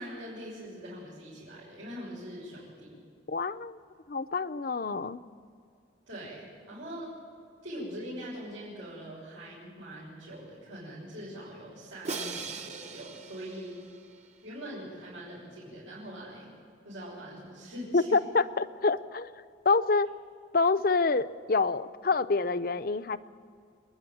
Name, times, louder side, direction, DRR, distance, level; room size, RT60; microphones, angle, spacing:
voice 1, 0.0-3.0 6.1-7.1 7.6-13.7 14.4-16.5 16.8-18.2, equal, 90° right, -9 dB, 6.5 m, -42 dB
voice 2, 3.3-3.8 4.1-5.2 17.9-19.3 19.6-20.1 20.5-23.2, left 4 dB, 50° left, 13 dB, 0.6 m, -27 dB
Crash cymbal, 12.0-14.3, right 4 dB, 35° right, 1.0 m, -39 dB
28.0 x 10.5 x 9.1 m, 2.4 s
head